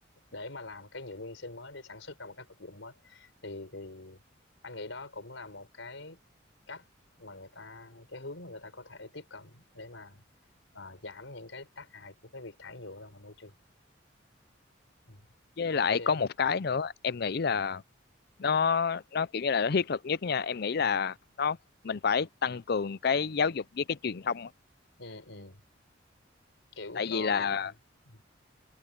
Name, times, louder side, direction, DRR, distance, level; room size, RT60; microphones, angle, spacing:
voice 1, 0.3-4.2 4.6-6.2 6.7-6.8 7.2-10.2 10.7-13.5 15.1-15.3 15.7-16.2 20.8-21.0 25.0-25.6 26.7-27.7 28.1-28.2, left 2 dB, 75° left, 4.1 m, -44 dB
voice 2, 15.6-17.8 18.4-21.6 21.8-24.5 27.0-27.7, left 6 dB, 50° left, 0.5 m, -29 dB
head